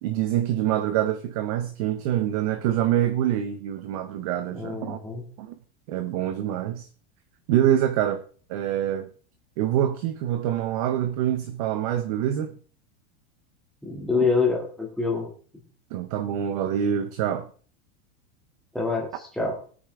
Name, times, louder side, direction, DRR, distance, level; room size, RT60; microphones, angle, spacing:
voice 1, 0.0-5.0 5.4-5.6 5.9-6.9 7.5-8.2 8.5-9.1 9.6-12.6 14.1-14.3 15.9-17.5, right 11 dB, 30° right, 0.6 m, -25 dB
voice 2, 4.5-5.2 13.8-15.3 18.7-19.1 19.4-19.6, left 4 dB, ahead, 2.3 m, -25 dB
19.5 x 8.8 x 3.4 m
supercardioid pair, 175°, 37 cm